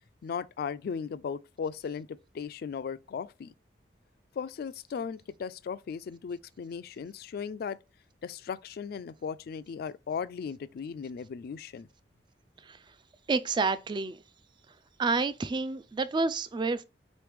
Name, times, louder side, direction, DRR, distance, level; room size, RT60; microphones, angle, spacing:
voice 1, 0.2-3.5 4.4-7.8 8.2-11.9, left 6 dB, 55° left, 0.3 m, -37 dB
voice 2, 13.3-14.2 15.0-16.8, right 4 dB, 25° right, 0.3 m, -29 dB
4.2 x 3.1 x 3.3 m
head